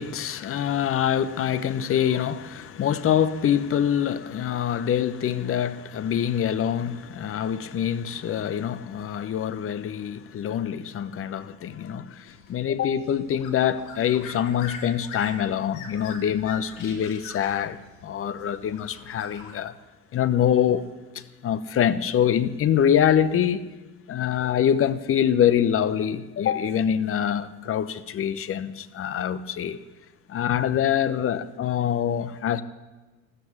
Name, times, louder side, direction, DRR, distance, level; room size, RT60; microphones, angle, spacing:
voice 1, 0.0-17.8 18.0-19.7 20.1-20.9 21.1-23.6 24.1-29.8 30.3-32.6, left 9 dB, 30° left, 0.9 m, -25 dB
sound 1, 12.3-19.5, left 5 dB, 70° left, 3.0 m, -43 dB
14.0 x 13.5 x 7.3 m
hypercardioid pair, 80°, 42 cm